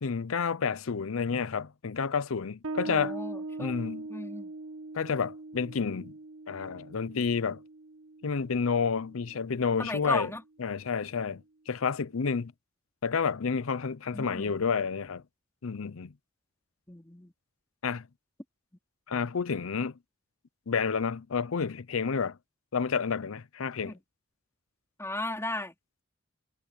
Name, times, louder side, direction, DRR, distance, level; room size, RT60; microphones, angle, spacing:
voice 1, 0.0-3.2 3.6-4.1 4.9-6.1 6.5-7.6 8.2-10.3 10.6-12.5 13.0-15.2 15.6-16.1 17.8-18.1 19.1-19.9 20.7-22.4 22.7-23.9, left 5 dB, 80° left, 0.6 m, -30 dB
Bass guitar, 2.6-9.8, right 2 dB, 85° right, 1.7 m, -41 dB
voice 2, 2.8-3.8 4.1-4.5 9.8-10.4 14.1-14.5 16.9-17.3 23.8-24.0 25.0-25.7, left 2 dB, 15° left, 4.0 m, -35 dB
head